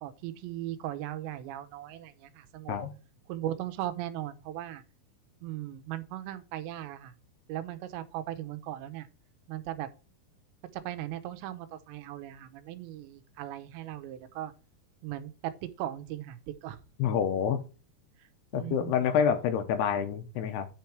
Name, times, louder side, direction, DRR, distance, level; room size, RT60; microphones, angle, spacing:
voice 1, 0.0-2.8 3.3-4.8 5.4-7.1 7.5-9.1 9.5-9.9 10.7-14.5 15.0-16.8 18.2-18.3 18.5-18.9, right 13 dB, 85° right, 3.1 m, -38 dB
voice 2, 17.0-17.6 18.5-20.7, left 8 dB, 80° left, 2.8 m, -27 dB
9.5 x 4.7 x 4.5 m
omnidirectional pair, 5.0 m